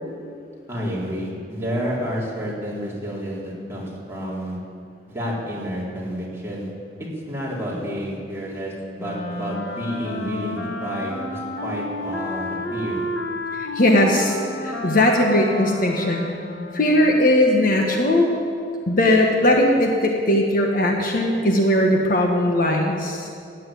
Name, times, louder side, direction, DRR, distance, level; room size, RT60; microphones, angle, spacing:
voice 1, 0.7-4.6 5.1-6.7 7.3-8.7 9.0-13.0, equal, 15° right, -6 dB, 3.8 m, -30 dB
Wind instrument woodwind instrument, 9.0-17.2, left 1 dB, 70° left, 1.6 m, -31 dB
voice 2, 13.6-16.3 16.7-18.3 18.9-23.3, left 1 dB, 55° left, 1 dB, 1.5 m, -19 dB
15.5 x 9.5 x 9.3 m, 2.4 s
head